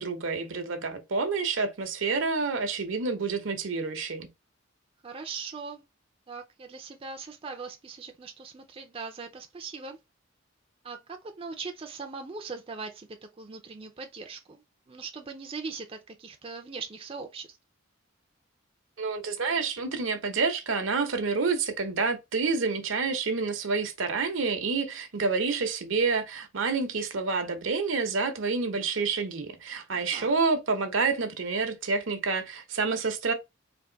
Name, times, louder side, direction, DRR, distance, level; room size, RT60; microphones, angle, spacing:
voice 1, 0.0-4.3 19.0-33.3, right 4 dB, 75° right, 0.8 m, -28 dB
voice 2, 5.0-5.8 6.3-10.0 10.8-17.6 29.9-30.3, right 4 dB, 30° right, 0.4 m, -40 dB
3.4 x 2.6 x 3.8 m
head